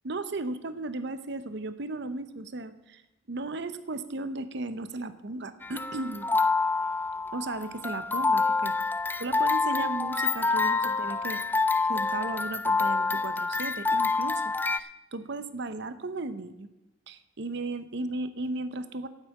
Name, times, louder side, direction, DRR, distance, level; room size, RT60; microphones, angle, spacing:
voice 1, 0.0-3.0 3.3-6.3 7.3-8.7 9.2-16.7 17.1-19.1, right 2 dB, 60° right, 12 dB, 0.7 m, -36 dB
sound 1, 5.6-14.8, left 3 dB, 10° left, 0.4 m, -27 dB
9.0 x 8.3 x 8.3 m, 0.99 s
head